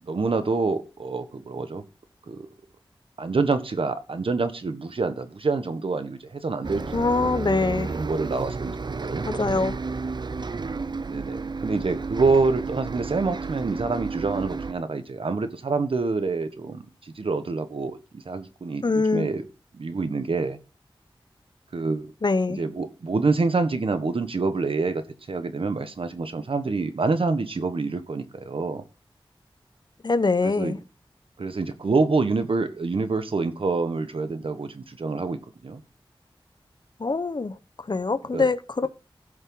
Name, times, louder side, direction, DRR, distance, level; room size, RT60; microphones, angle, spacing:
voice 1, 0.0-1.8 2.3-2.5 3.2-7.3 7.6-9.6 11.1-19.5 19.7-20.6 21.7-22.1 22.6-28.8 30.4-30.7 31.4-35.8 38.3-38.5, right 3 dB, 75° right, 1.5 m, -27 dB
Bus, 6.6-14.7, right 4 dB, 55° right, 0.6 m, -32 dB
voice 2, 6.9-8.0 9.2-9.8 18.8-19.3 22.2-22.6 30.0-30.8 37.0-38.9, left 3 dB, 50° left, 1.1 m, -24 dB
16.0 x 6.6 x 4.0 m
wide cardioid pair, 60°, 9 cm